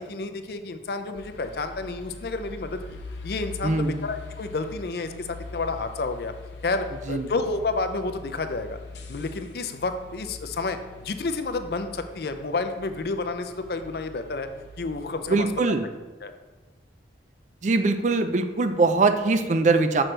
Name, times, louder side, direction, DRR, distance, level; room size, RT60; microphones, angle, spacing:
voice 1, 0.0-2.8 3.2-6.3 6.6-8.8 9.1-14.5 14.8-15.5 16.2-16.3, left 3 dB, 60° left, 8 dB, 0.5 m, -30 dB
sound 1, 1.1-15.5, left 3 dB, 85° left, 0.8 m, -43 dB
voice 2, 3.6-4.0 7.1-7.3 15.3-15.9 17.6-20.0, right 3 dB, 40° right, 9 dB, 0.4 m, -22 dB
6.2 x 6.0 x 3.2 m, 1.3 s
head